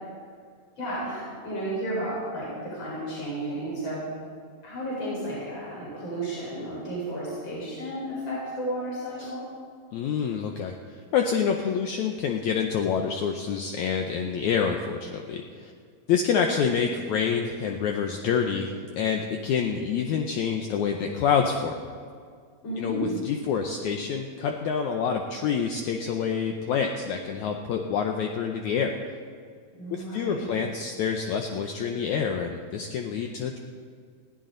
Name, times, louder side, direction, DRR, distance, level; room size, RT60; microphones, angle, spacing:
voice 1, 0.8-4.0 4.6-9.4 22.6-23.3 29.7-30.5, right 1 dB, 35° left, -6 dB, 5.3 m, -33 dB
voice 2, 9.9-15.7 16.1-21.8 22.8-28.9 29.9-33.6, left 6 dB, 75° left, 3 dB, 1.9 m, -27 dB
21.0 x 15.0 x 3.9 m, 2.1 s
omnidirectional pair, 4.0 m